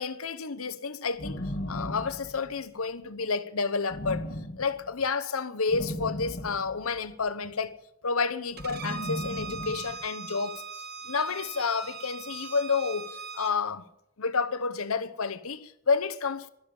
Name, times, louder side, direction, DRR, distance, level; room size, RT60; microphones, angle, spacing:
voice 1, 0.0-4.3 4.6-7.8 8.0-10.6 11.1-13.8 14.2-16.5, left 5 dB, 85° left, 1.0 m, -30 dB
sound 1, 1.2-2.7 3.9-4.9 5.7-7.2 8.5-10.1, left 1 dB, 50° left, 1.5 m, -36 dB
Bowed string instrument, 8.6-13.5, right 5 dB, 45° right, 1.2 m, -40 dB
12.5 x 12.0 x 8.8 m
head